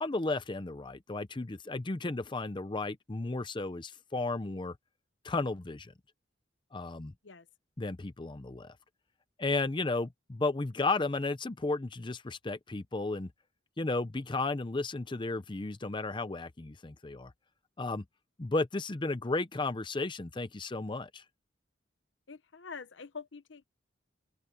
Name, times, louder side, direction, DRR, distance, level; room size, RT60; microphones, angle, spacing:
voice 1, 0.0-4.7 5.2-5.9 6.7-7.1 7.8-8.8 9.4-13.3 13.8-17.3 17.8-18.0 18.4-21.2, left 3 dB, 25° left, 0.6 m, -33 dB
voice 2, 22.3-23.8, left 5 dB, 70° left, 0.9 m, -46 dB
open air
head